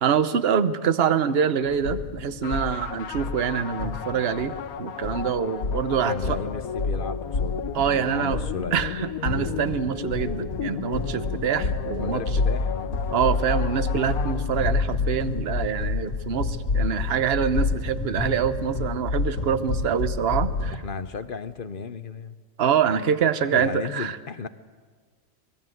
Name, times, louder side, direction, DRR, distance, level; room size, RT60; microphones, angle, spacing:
voice 1, 0.0-6.4 7.7-8.4 8.7-12.2 13.1-20.7 22.6-24.2, right 7 dB, 50° right, 12 dB, 1.0 m, -25 dB
sound 1, 1.6-20.8, left 3 dB, 65° left, 2.0 m, -29 dB
sound 2, 2.4-15.0, left 8 dB, 90° left, 1.3 m, -35 dB
voice 2, 6.0-7.6 8.1-8.8 12.0-13.1 20.7-22.4 23.5-24.5, left 5 dB, 45° left, 12 dB, 0.8 m, -34 dB
24.5 x 20.0 x 7.8 m, 1.5 s
omnidirectional pair, 1.5 m